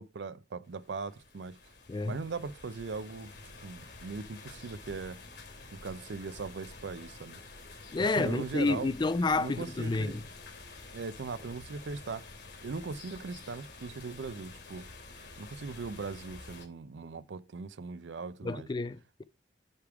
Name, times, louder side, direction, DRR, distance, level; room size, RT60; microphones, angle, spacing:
voice 1, 0.0-1.6 2.0-3.3 3.6-5.2 5.7-7.4 8.0-8.9 9.4-10.2 10.9-12.3 12.6-14.9 15.4-18.7, right 4 dB, 80° right, 0.5 m, -39 dB
sound 1, 0.6-16.7, left 3 dB, 75° left, 2.9 m, -49 dB
voice 2, 7.9-10.2 18.4-19.2, left 3 dB, 25° left, 0.4 m, -30 dB
9.7 x 3.6 x 4.6 m
head